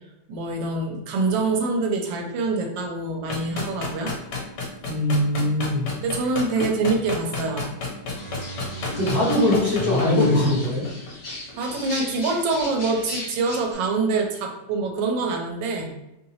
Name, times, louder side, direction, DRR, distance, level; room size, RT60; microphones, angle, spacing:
voice 1, 0.3-4.1 6.0-7.7 11.6-15.9, right 3 dB, 85° right, 2 dB, 1.3 m, -25 dB
sound 1, 3.3-11.8, left 3 dB, 70° left, 1.2 m, -31 dB
voice 2, 4.9-5.9 9.0-10.8, left 1 dB, 25° right, -10 dB, 0.9 m, -22 dB
sound 2, 8.1-13.7, left 2 dB, 55° left, 0.5 m, -31 dB
3.1 x 2.7 x 2.7 m, 0.92 s
omnidirectional pair, 2.0 m